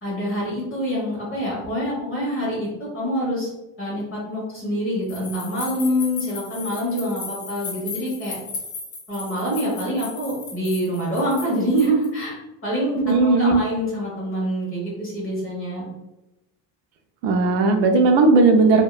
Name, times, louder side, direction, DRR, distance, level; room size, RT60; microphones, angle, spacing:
voice 1, 0.0-3.5 3.8-8.4 9.1-12.4 12.6-15.8, equal, 30° left, -7 dB, 1.2 m, -25 dB
sound 1, 5.1-12.1, left 4 dB, 50° left, 1.3 m, -36 dB
voice 2, 13.0-13.6 17.2-18.8, right 3 dB, 80° right, 4 dB, 0.5 m, -16 dB
2.7 x 2.1 x 2.3 m, 0.98 s
supercardioid pair, 105°, 44 cm